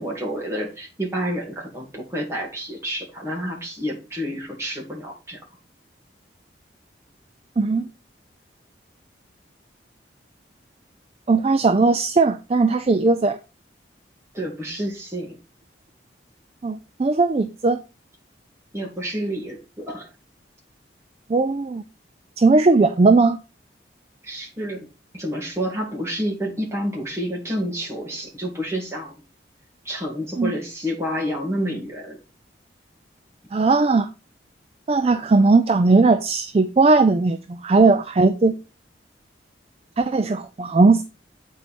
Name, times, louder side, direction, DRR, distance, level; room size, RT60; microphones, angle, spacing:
voice 1, 0.0-5.4 14.3-15.4 18.7-20.1 24.2-24.9 25.1-29.2 29.8-32.2, equal, 15° right, 2.1 m, -29 dB
voice 2, 7.6-7.9 11.3-13.4 16.6-17.8 21.3-21.8 22.4-23.4 30.4-30.5 33.5-34.1 34.9-38.5 40.0-41.0, right 3 dB, 35° right, 0.4 m, -18 dB
8.3 x 4.5 x 4.2 m
head